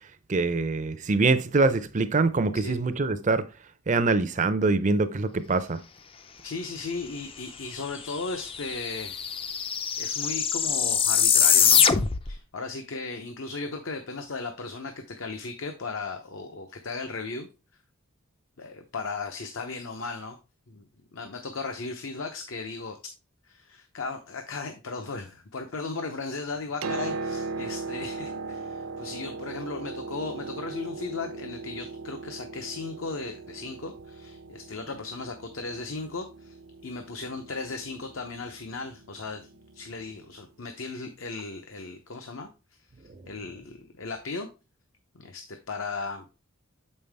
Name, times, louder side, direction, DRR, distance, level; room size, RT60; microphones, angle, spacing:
voice 1, 0.3-3.5 3.9-5.8, right 3 dB, 35° right, 0.5 m, -24 dB
voice 2, 6.4-9.2 10.0-11.9 12.3-17.5 18.6-20.4 20.7-20.9 21.1-23.0 23.5-36.6 36.8-39.5 39.7-42.5 43.3-44.5 45.1-46.3, left 3 dB, 65° left, 0.8 m, -36 dB
sound 1, 7.9-8.0 8.1-12.4, left 7 dB, 25° left, 0.4 m, -23 dB
Piano, 26.6-40.3 41.4-41.5, right 3 dB, 75° right, 0.7 m, -39 dB
7.2 x 5.4 x 3.4 m
head